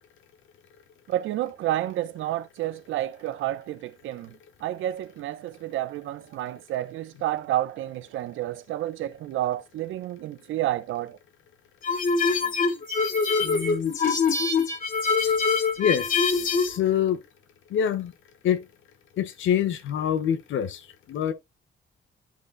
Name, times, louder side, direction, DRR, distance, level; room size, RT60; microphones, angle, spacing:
voice 1, 1.1-4.3 4.6-11.2, right 13 dB, 85° right, 0.8 m, -30 dB
sound 1, 11.8-16.8, left 4 dB, 45° left, 2.9 m, -24 dB
voice 2, 13.4-13.9 15.2-15.3 15.8-17.2 17.7-18.1 18.4-18.6 19.2-20.8 21.1-21.3, left 9 dB, 75° left, 1.2 m, -26 dB
12.0 x 4.0 x 2.2 m
cardioid pair, 90°, 20 cm